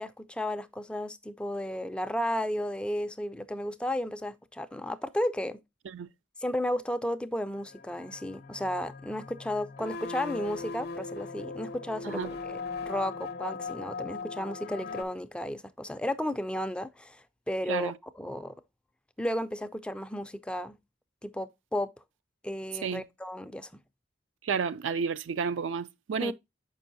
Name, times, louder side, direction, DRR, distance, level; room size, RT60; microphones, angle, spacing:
voice 1, 0.0-5.6 6.4-12.6 12.9-17.9 18.2-18.5 19.2-20.8 21.2-21.9 22.4-23.7 26.2-26.3, left 1 dB, 5° left, 0.3 m, -33 dB
sound 1, 7.8-15.0, left 4 dB, 55° left, 0.6 m, -39 dB
voice 2, 24.4-26.3, right 6 dB, 75° right, 0.4 m, -31 dB
6.9 x 5.4 x 2.6 m
head